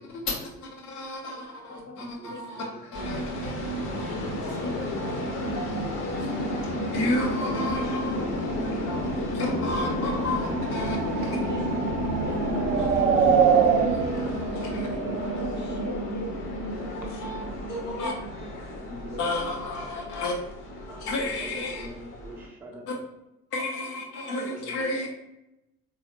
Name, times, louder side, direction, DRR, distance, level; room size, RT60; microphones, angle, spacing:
voice 1, 0.0-2.6 2.9-8.2 8.6-11.4 12.8-15.0 16.7-18.1 19.2-20.3 20.8-21.9 22.9-23.0 23.5-25.1, left 2 dB, 70° left, 1.0 m, -34 dB
voice 2, 2.3-3.0 4.7-4.9 8.1-8.8 9.2-10.2 11.5-11.7 12.3-13.4 15.4-16.3 18.0-18.3 21.6-21.7, left 2 dB, 25° left, 0.6 m, -41 dB
sound 1, 2.9-22.5, equal, 45° left, 1.0 m, -31 dB
sound 2, 10.1-15.9, right 7 dB, 65° right, 0.5 m, -26 dB
voice 3, 14.9-15.6 16.8-17.2 18.8-19.4 20.8-22.9 24.5-24.9, right 1 dB, 5° right, 0.3 m, -43 dB
3.9 x 2.4 x 3.0 m
figure-of-eight pair, 55°, 46 cm